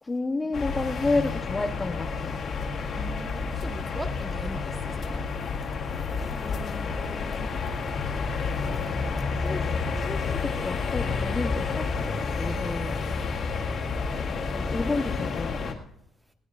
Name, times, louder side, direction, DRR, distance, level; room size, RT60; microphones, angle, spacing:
voice 1, 0.0-2.4 6.3-7.5 9.4-13.0 14.2-15.8, left 3 dB, 20° left, 0.9 m, -32 dB
sound 1, 0.5-15.7, left 4 dB, 45° left, 2.0 m, -30 dB
voice 2, 2.9-5.3 6.2-6.6, right 1 dB, 15° right, 1.7 m, -40 dB
20.0 x 17.5 x 2.5 m
cardioid pair, 140°, 0 cm